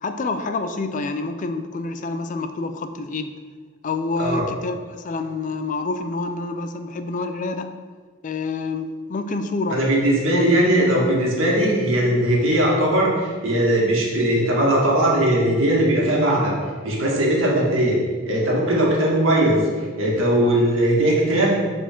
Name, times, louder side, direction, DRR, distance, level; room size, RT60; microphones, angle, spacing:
voice 1, 0.0-3.3 3.8-7.7 8.2-9.8 10.3-10.6, left 3 dB, 40° left, 8 dB, 0.4 m, -27 dB
voice 2, 9.7-16.5 16.8-18.0 18.3-19.6 19.9-21.5, right 1 dB, 85° right, -3 dB, 1.8 m, -19 dB
7.1 x 4.4 x 4.5 m, 1.5 s
head